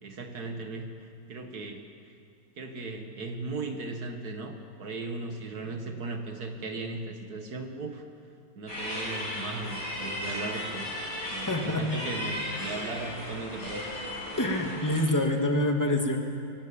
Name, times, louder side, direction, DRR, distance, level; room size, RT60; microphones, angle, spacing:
voice 1, 0.0-1.9 2.6-8.0 8.6-10.9 11.3-13.8, right 3 dB, 85° right, 4 dB, 2.1 m, -37 dB
sound 1, 8.7-15.1, left 1 dB, 65° left, 6.6 m, -36 dB
voice 2, 11.5-11.9 14.4-16.2, left 1 dB, 10° left, 2 dB, 2.2 m, -26 dB
23.5 x 19.0 x 8.7 m, 2.3 s
omnidirectional pair, 1.6 m